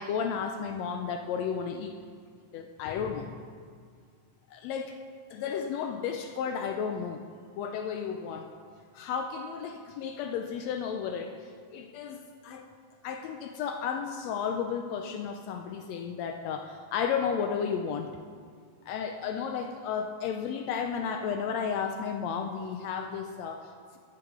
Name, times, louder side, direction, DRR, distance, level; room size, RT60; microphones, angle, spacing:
voice 1, 0.0-1.9 2.5-3.3 4.5-5.0 5.3-7.2 7.5-8.5 8.9-12.7 13.0-18.1 18.9-24.0, left 7 dB, 85° left, 5 dB, 1.5 m, -33 dB
14.5 x 6.9 x 3.6 m, 2.1 s
omnidirectional pair, 3.5 m